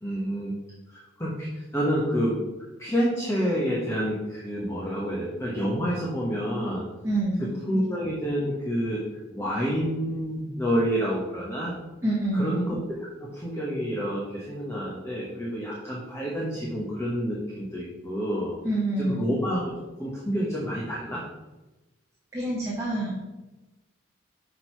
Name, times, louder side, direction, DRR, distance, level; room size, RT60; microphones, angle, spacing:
voice 1, 0.0-0.5 0.9-2.4 2.8-6.8 7.4-9.0 9.3-11.7 12.3-12.8 13.3-18.6 19.0-19.7 20.0-21.2, equal, 15° left, -4 dB, 1.0 m, -28 dB
voice 2, 7.0-7.5 12.0-12.6 18.6-19.2 22.3-23.1, right 1 dB, 15° right, -6 dB, 1.3 m, -26 dB
6.3 x 4.5 x 4.5 m, 1.1 s
head